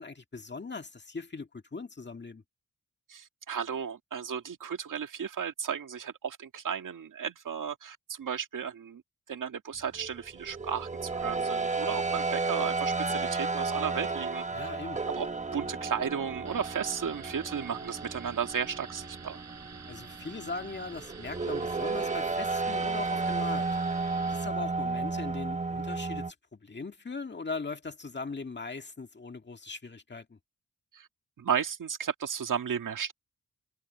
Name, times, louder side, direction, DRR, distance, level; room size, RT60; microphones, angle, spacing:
voice 1, 0.0-2.4 14.5-15.0 19.9-23.7 24.3-30.4, left 4 dB, 35° left, 1.9 m, -40 dB
voice 2, 3.1-9.0 9.3-14.4 15.1-15.3 15.5-19.4 30.9-31.1 31.4-33.1, right 7 dB, 75° right, 2.0 m, -34 dB
sound 1, 9.9-26.3, right 3 dB, 20° right, 1.3 m, -33 dB
sound 2, 16.5-24.5, right 6 dB, 60° right, 5.6 m, -49 dB
cardioid pair, 75°, 32 cm